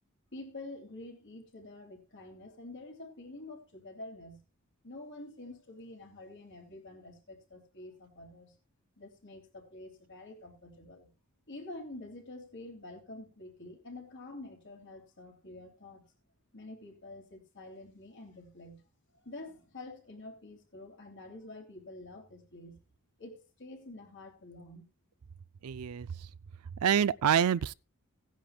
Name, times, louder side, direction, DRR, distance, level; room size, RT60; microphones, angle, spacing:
voice 1, 0.3-4.4 4.8-8.5 9.0-11.1 11.5-16.0 16.5-18.8 19.1-22.8 23.2-24.9, left 2 dB, 60° left, 3.0 m, -48 dB
voice 2, 25.6-26.3 26.8-27.7, right 8 dB, 90° right, 0.4 m, -27 dB
17.0 x 10.5 x 2.3 m
head